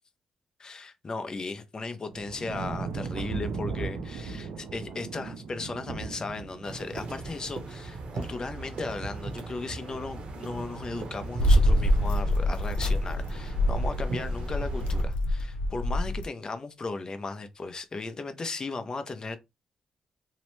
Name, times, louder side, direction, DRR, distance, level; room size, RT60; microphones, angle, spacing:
voice 1, 0.6-19.4, left 3 dB, 35° left, 0.5 m, -36 dB
sound 1, 2.1-7.6 8.8-9.1, right 5 dB, 85° right, 0.4 m, -37 dB
sound 2, 6.6-15.1, right 3 dB, 70° right, 0.8 m, -39 dB
sound 3, 11.4-16.2, equal, 90° left, 0.4 m, -25 dB
2.8 x 2.0 x 3.1 m
cardioid pair, 80°, 2 cm